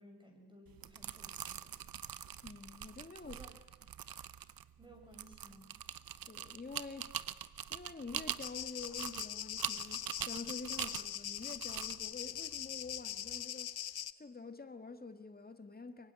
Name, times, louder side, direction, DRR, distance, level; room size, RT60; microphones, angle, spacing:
voice 1, 0.0-1.8 3.2-3.5 4.8-5.8, equal, 15° right, 6.0 m, -58 dB
sound 1, 0.7-13.4, right 9 dB, 70° right, 0.9 m, -44 dB
voice 2, 2.4-3.4 6.3-13.8 14.2-16.1, left 4 dB, 25° left, 1.9 m, -48 dB
sound 2, 8.4-14.1, left 11 dB, 85° left, 0.9 m, -42 dB
24.5 x 23.0 x 9.7 m
wide cardioid pair, 140°, 36 cm